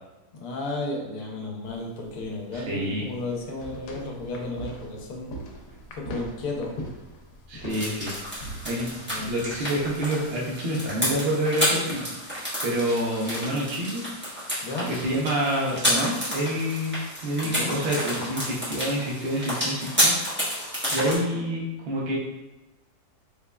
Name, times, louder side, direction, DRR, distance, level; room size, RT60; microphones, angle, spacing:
voice 1, 0.3-5.3 5.9-6.7 9.0-9.4 14.6-14.9 17.4-17.8, left 2 dB, 70° left, 0 dB, 1.2 m, -33 dB
sound 1, 1.7-10.5, equal, 90° left, 1.2 m, -42 dB
voice 2, 2.5-3.1 7.5-12.1 12.6-14.0 14.9-20.2 20.9-22.2, equal, 55° right, -3 dB, 0.7 m, -28 dB
sound 2, 7.7-21.2, equal, 10° right, 0.9 m, -30 dB
3.7 x 3.1 x 2.2 m, 1.1 s
omnidirectional pair, 1.8 m